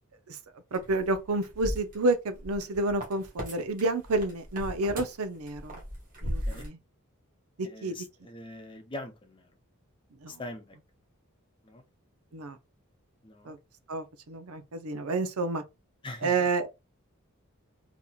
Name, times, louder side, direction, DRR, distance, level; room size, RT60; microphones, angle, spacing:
sound 1, 0.7-3.5 3.8-6.7, equal, 40° right, 1.5 m, -37 dB
voice 1, 0.7-5.8 6.2-6.8 7.6-8.1 10.2-10.4 12.3-12.6 13.4-13.6 13.9-15.6 16.2-16.7, right 2 dB, 85° right, 0.6 m, -30 dB
voice 2, 7.6-9.5 10.3-10.8 11.6-11.8 13.2-13.6 16.0-16.7, left 1 dB, 25° left, 0.6 m, -43 dB
4.1 x 2.9 x 2.4 m
head